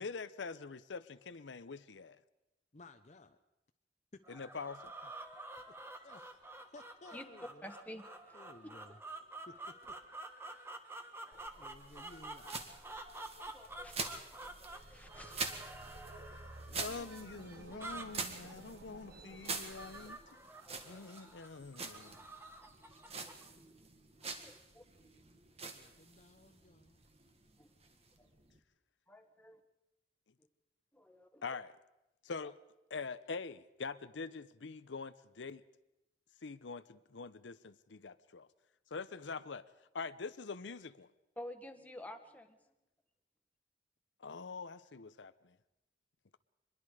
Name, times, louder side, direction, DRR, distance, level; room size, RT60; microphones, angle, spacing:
voice 1, 0.0-2.2 4.3-4.9 16.7-20.2 20.8-22.2 31.4-31.7 32.2-32.6 32.9-35.6 36.4-38.5 38.9-39.6 39.9-41.1 44.2-45.6, left 4 dB, 90° left, 0.7 m, -44 dB
voice 2, 2.7-3.4 4.1-4.2 6.0-7.7 8.3-9.0 9.5-9.9 11.6-12.6 25.7-27.0, left 2 dB, 40° left, 0.8 m, -57 dB
sound 1, 4.2-23.5, right 2 dB, 15° right, 1.4 m, -50 dB
voice 3, 7.6-8.4 11.2-11.6 13.4-14.0 14.4-15.5 16.7-16.8 20.7-21.0 23.2-23.4 24.4-24.8 27.6-27.7 28.2-28.3 29.1-29.6 30.9-31.5 41.4-42.7, left 1 dB, 10° left, 1.5 m, -51 dB
sound 2, 11.3-28.6, right 4 dB, 35° right, 1.8 m, -46 dB
sound 3, 14.7-20.1, right 2 dB, 60° right, 1.3 m, -55 dB
24.5 x 21.5 x 4.9 m
head